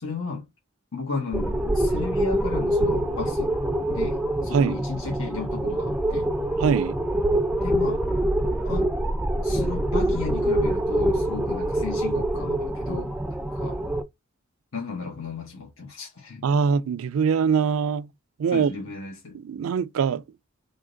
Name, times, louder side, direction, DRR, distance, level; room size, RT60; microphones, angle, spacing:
voice 1, 0.0-0.5 0.9-3.5 3.9-6.3 7.6-8.1 8.6-8.9 9.4-13.1 13.4-13.8 14.7-16.5 18.5-19.4, left 4 dB, 75° left, 1.1 m, -34 dB
sound 1, 1.3-14.0, right 1 dB, 5° right, 0.3 m, -25 dB
voice 2, 6.6-7.0 16.4-18.1 18.4-18.7 19.3-20.2, right 6 dB, 80° right, 0.4 m, -22 dB
3.6 x 2.7 x 3.8 m
head